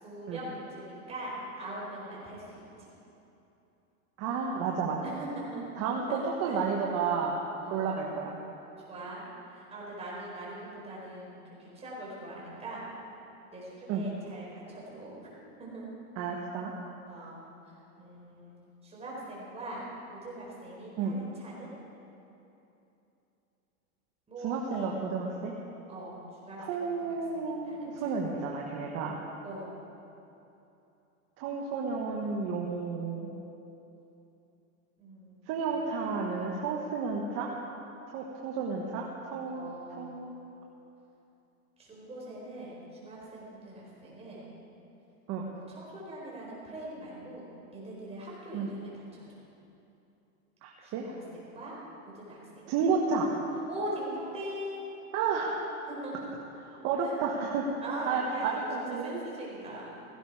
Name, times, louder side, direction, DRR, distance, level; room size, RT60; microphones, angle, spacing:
voice 1, 0.0-2.9 5.0-5.6 6.1-6.6 7.6-7.9 8.9-12.9 13.5-15.3 15.6-15.9 17.1-17.4 18.0-19.8 20.2-21.7 24.3-25.0 25.9-28.1 29.4-29.8 35.0-35.7 39.5-40.3 41.8-44.5 45.5-49.2 50.8-51.7 52.1-52.4 53.7-55.0 55.9-56.3 57.0-57.1 57.8-58.6 59.0-60.0, right 1 dB, 15° right, -5 dB, 4.5 m, -42 dB
voice 2, 4.2-5.0 5.8-7.4 7.7-8.4 13.9-14.0 16.2-16.7 21.0-21.2 24.4-25.5 26.6-29.2 31.4-33.3 35.5-37.5 38.1-40.3 45.3-45.4 48.5-48.7 50.6-51.1 52.7-53.3 55.1-55.6 56.8-59.2, right 5 dB, 35° right, -1 dB, 1.4 m, -31 dB
17.0 x 15.0 x 4.8 m, 2.9 s
supercardioid pair, 150°, 43 cm